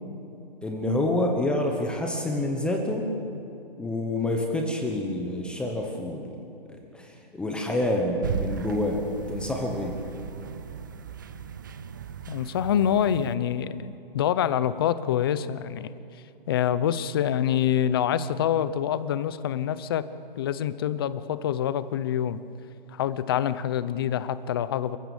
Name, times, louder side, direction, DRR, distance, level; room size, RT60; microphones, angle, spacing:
voice 1, 0.6-3.1 3.8-6.4 6.7-10.0, left 1 dB, 5° left, 1 dB, 1.1 m, -28 dB
sound 1, 8.2-13.4, right 7 dB, 20° right, 0.4 m, -36 dB
voice 2, 12.3-15.9 16.5-20.1 20.4-22.4 22.9-25.0, left 10 dB, 25° left, 15 dB, 0.7 m, -26 dB
29.0 x 15.0 x 7.2 m, 2.8 s
hypercardioid pair, 160°, 29 cm